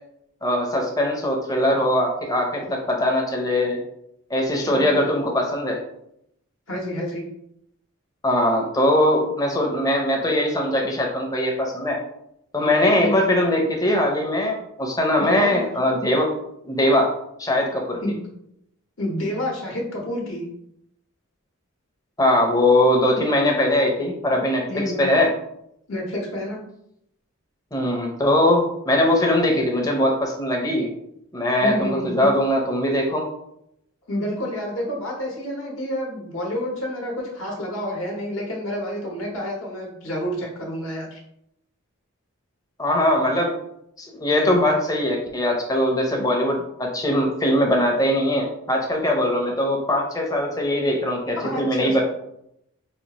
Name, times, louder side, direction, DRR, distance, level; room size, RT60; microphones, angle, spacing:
voice 1, 0.4-3.8 4.3-5.8 8.2-12.0 12.5-16.3 16.7-17.1 17.4-18.0 22.2-25.3 27.7-30.9 31.3-33.3 42.8-43.5 44.0-52.0, left 1 dB, 15° left, 1 dB, 0.6 m, -21 dB
voice 2, 4.6-4.9 6.7-7.2 12.9-13.3 15.2-15.7 18.0-18.2 19.0-20.5 24.7-25.1 25.9-26.6 31.6-32.3 34.1-41.2 51.4-52.0, left 1 dB, 65° left, -2 dB, 1.0 m, -29 dB
5.0 x 2.4 x 2.9 m, 0.77 s
head